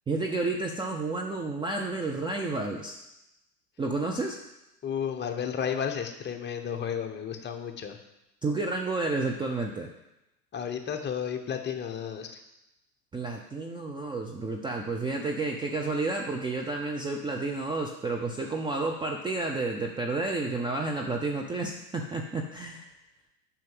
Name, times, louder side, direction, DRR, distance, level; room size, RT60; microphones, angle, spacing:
voice 1, 0.1-3.0 3.8-4.4 8.4-9.9 13.1-22.8, right 3 dB, 10° right, 2 dB, 0.6 m, -31 dB
voice 2, 4.8-8.0 10.5-12.4, left 8 dB, 20° left, 5 dB, 1.1 m, -32 dB
7.5 x 5.8 x 7.7 m, 0.91 s
hypercardioid pair, 105°, 47 cm